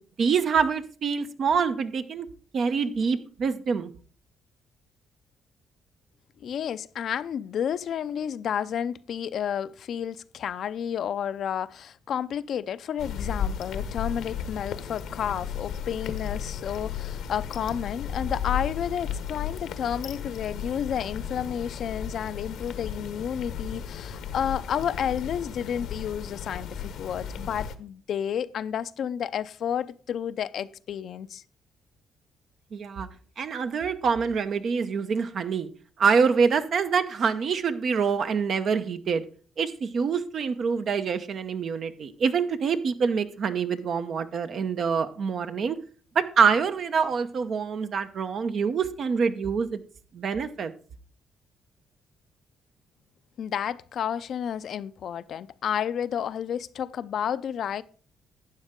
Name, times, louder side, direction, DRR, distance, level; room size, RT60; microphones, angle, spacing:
voice 1, 0.2-2.3 2.5-3.9 32.7-33.1 33.4-35.7 36.0-39.2 39.6-45.8 46.1-49.8 50.1-50.7, right 6 dB, 60° right, 0.9 m, -25 dB
voice 2, 6.4-31.4 53.4-57.8, left 9 dB, 65° left, 0.5 m, -31 dB
sound 1, 13.0-27.7, left 8 dB, 80° left, 1.0 m, -34 dB
12.0 x 8.9 x 3.7 m
cardioid pair, 90°, 0 cm